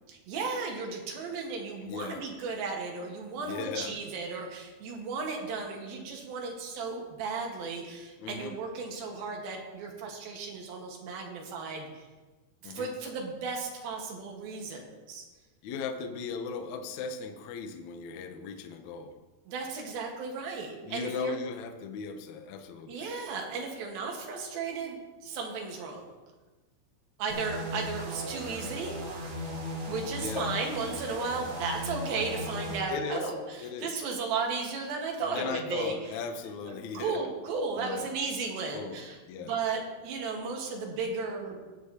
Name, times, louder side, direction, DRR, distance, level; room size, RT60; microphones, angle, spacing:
voice 1, 0.1-12.1 12.6-15.3 19.5-21.3 22.9-26.1 27.2-29.0 29.9-36.1 36.6-41.6, right 4 dB, 75° right, 0 dB, 3.2 m, -35 dB
voice 2, 1.8-2.2 3.4-4.0 8.2-8.5 12.6-12.9 15.6-19.1 20.8-23.0 30.2-30.5 32.9-33.2 33.6-33.9 35.2-37.3 37.8-38.1 38.7-39.5, left 5 dB, 75° left, 7 dB, 1.7 m, -37 dB
sound 1, 27.3-32.8, equal, 50° right, 1.6 m, -37 dB
18.0 x 8.2 x 2.9 m, 1.2 s
omnidirectional pair, 4.4 m